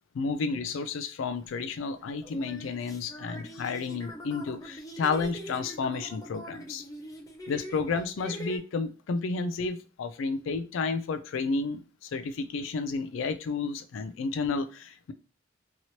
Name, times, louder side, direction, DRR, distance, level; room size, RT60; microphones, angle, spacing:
voice 1, 0.1-6.8 7.5-15.1, left 4 dB, 85° left, 10 dB, 0.4 m, -31 dB
sound 1, 1.4-1.5 2.2-8.6, equal, 15° left, 0.4 m, -43 dB
2.9 x 2.9 x 2.7 m, 0.36 s
head